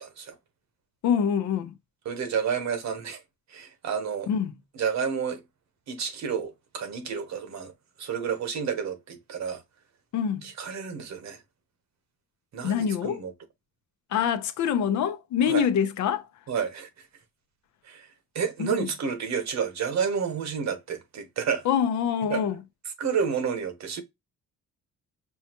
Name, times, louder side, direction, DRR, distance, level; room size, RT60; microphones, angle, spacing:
voice 1, 1.0-1.7 4.3-4.5 10.1-10.4 12.6-13.2 14.1-16.3 18.6-18.9 21.6-22.6, left 8 dB, 70° left, 0.7 m, -25 dB
voice 2, 2.0-3.2 3.5-4.3 4.7-5.4 5.9-7.7 8.0-9.6 10.4-11.4 12.5-13.3 15.5-15.7 16.5-17.1 17.8-21.6 22.3-22.4 23.0-24.0, right 6 dB, 65° right, 1.0 m, -30 dB
5.4 x 2.2 x 2.9 m
cardioid pair, 90°, 30 cm